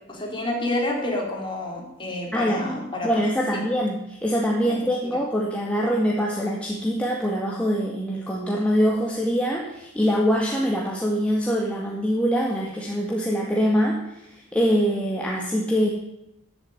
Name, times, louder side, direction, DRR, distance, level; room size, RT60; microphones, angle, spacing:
voice 1, 0.1-3.1 3.5-3.6 4.6-4.9, left 1 dB, 25° left, -1 dB, 4.5 m, -29 dB
voice 2, 2.3-2.7 3.0-15.9, equal, 5° left, -2 dB, 2.0 m, -24 dB
15.0 x 8.0 x 9.9 m, 0.84 s
head